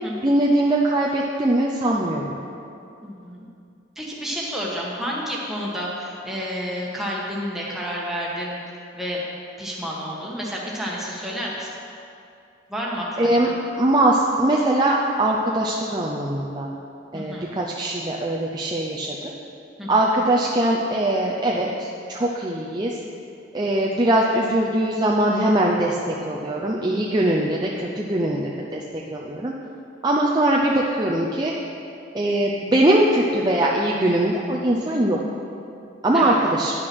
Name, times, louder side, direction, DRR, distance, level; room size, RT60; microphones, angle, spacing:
voice 1, 0.2-2.4 13.2-13.5 13.8-16.7 17.1-19.2 19.9-22.9 23.5-29.5 30.0-31.5 32.1-35.2 36.0-36.7, right 1 dB, 20° right, -3 dB, 0.6 m, -21 dB
voice 2, 3.0-3.5 3.9-8.6 8.9-9.2 9.6-11.7 12.7-13.5 17.1-17.5 19.8-20.1 36.1-36.4, equal, ahead, -4 dB, 1.5 m, -30 dB
10.5 x 6.2 x 6.1 m, 2.6 s
head